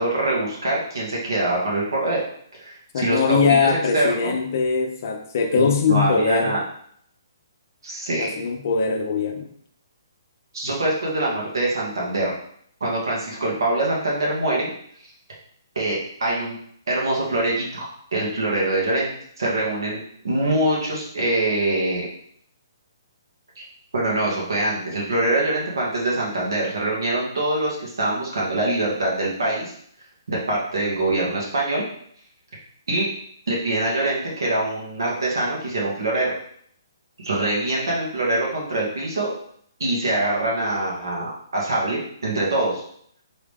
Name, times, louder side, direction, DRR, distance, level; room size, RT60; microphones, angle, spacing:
voice 1, 0.0-2.2 2.6-4.3 5.5-6.6 7.8-8.3 10.5-12.3 12.8-14.7 15.8-16.6 16.9-19.1 19.4-20.0 20.2-22.1 23.6-23.7 23.9-29.7 30.3-31.8 32.9-33.1 33.5-36.3 37.2-39.3 39.8-42.8, right 2 dB, 75° right, -4 dB, 1.9 m, -24 dB
voice 2, 2.9-6.6 8.1-9.5, left 5 dB, 45° left, 3 dB, 0.7 m, -21 dB
3.7 x 3.4 x 3.6 m, 0.65 s
hypercardioid pair, 165°, 2 cm